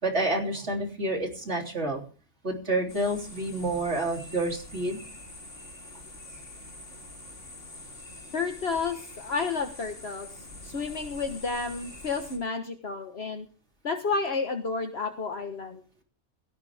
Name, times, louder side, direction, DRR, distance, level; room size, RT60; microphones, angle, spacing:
voice 1, 0.0-2.0 2.4-5.0, right 2 dB, 65° right, 2 dB, 3.8 m, -29 dB
sound 1, 2.9-12.4, left 2 dB, 75° left, 3.8 m, -45 dB
voice 2, 8.3-10.3 10.6-13.5 13.8-16.0, left 4 dB, 60° left, 5 dB, 1.7 m, -31 dB
16.5 x 16.0 x 3.6 m, 0.35 s
omnidirectional pair, 1.3 m